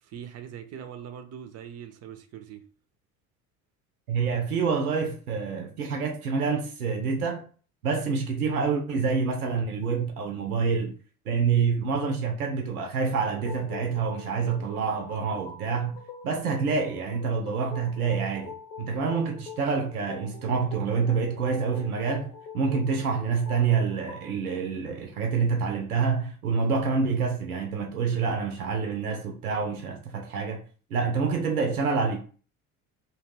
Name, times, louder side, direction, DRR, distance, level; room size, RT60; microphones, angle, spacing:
voice 1, 0.0-2.7, right 8 dB, 35° right, 0.5 m, -42 dB
voice 2, 4.1-7.4 7.8-10.9 11.3-16.0 16.2-30.6 30.9-32.2, right 5 dB, 85° right, 0.6 m, -27 dB
sound 1, 13.3-24.3, left 5 dB, 55° left, 0.9 m, -45 dB
2.2 x 2.2 x 3.2 m
figure-of-eight pair, 60°, 43 cm